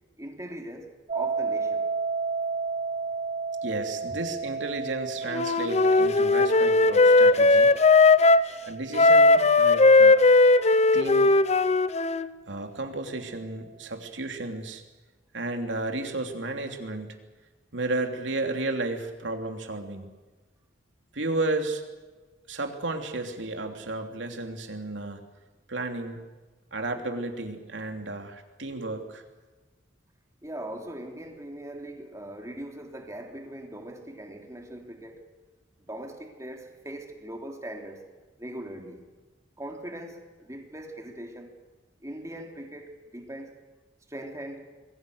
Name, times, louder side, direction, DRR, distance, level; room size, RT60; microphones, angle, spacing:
voice 1, 0.2-1.9 4.1-4.2 30.4-35.3 35.8-38.0 38.4-39.0 39.6-41.5 42.0-43.6 44.1-44.7, right 1 dB, 15° right, 3.2 m, -40 dB
sound 1, 1.1-12.0, right 4 dB, 40° right, 1.5 m, -34 dB
voice 2, 3.6-7.7 8.7-10.2 10.9-11.3 12.5-14.8 15.3-17.2 17.7-20.1 21.1-21.8 22.5-25.2 25.7-26.2 26.7-29.2, right 2 dB, 80° right, 3.1 m, -33 dB
Wind instrument woodwind instrument, 5.3-8.5 8.9-12.3, left 3 dB, 35° left, 0.7 m, -18 dB
27.0 x 22.0 x 6.6 m
head